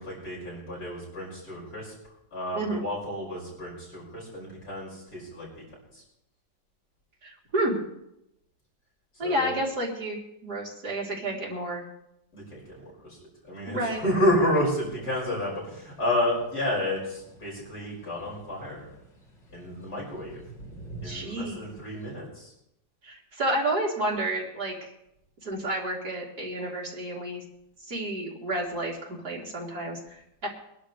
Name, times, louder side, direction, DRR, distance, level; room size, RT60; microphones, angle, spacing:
voice 1, 0.0-1.9 2.3-5.5 5.9-6.0 9.2-9.6 12.3-12.8 13.0-13.2 13.4-18.9 19.5-20.4 21.0-22.5, left 1 dB, 60° left, -5 dB, 6.7 m, -30 dB
voice 2, 7.2-7.8 9.2-11.8 13.7-14.1 21.0-21.8 23.0-24.9 25.4-27.4 27.9-30.5, right 1 dB, 60° right, -4 dB, 4.0 m, -30 dB
sound 1, 14.2-22.1, right 2 dB, 80° left, 5.8 m, -49 dB
24.0 x 11.5 x 3.4 m, 0.81 s
omnidirectional pair, 1.9 m